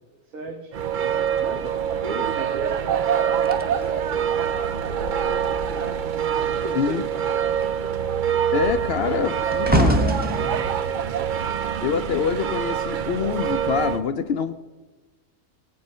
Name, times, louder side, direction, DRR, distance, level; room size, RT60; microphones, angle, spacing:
voice 1, 0.2-0.8 1.4-6.3 6.5-8.2 9.0-10.9 11.2-11.5, right 3 dB, 80° right, 1 dB, 1.7 m, -37 dB
sound 1, 0.7-14.0, right 8 dB, 65° right, 0.5 m, -25 dB
sound 2, 3.4-6.2 6.5-6.8 7.1-12.5 13.2-13.5, right 1 dB, 10° right, 0.6 m, -27 dB
voice 2, 8.5-10.0 11.8-14.5, left 6 dB, 60° left, 10 dB, 0.7 m, -25 dB
16.5 x 8.8 x 5.4 m, 1.2 s
omnidirectional pair, 1.4 m